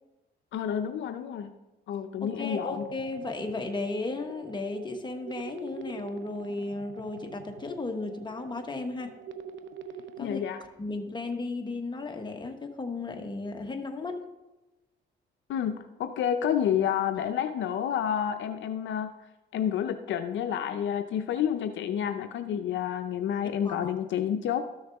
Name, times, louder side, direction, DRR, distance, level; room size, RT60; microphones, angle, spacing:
voice 1, 0.5-1.5 1.9-2.9 10.2-10.6 15.5-19.1 19.5-24.6, left 9 dB, 70° left, 8 dB, 0.6 m, -29 dB
voice 2, 2.2-9.1 10.2-10.4 10.8-14.2 23.4-23.9, left 3 dB, 25° left, 4 dB, 1.2 m, -35 dB
sound 1, 2.2-10.2, right 7 dB, 70° right, 0.7 m, -46 dB
13.0 x 6.4 x 3.5 m, 1.1 s
cardioid pair, 90°, 20 cm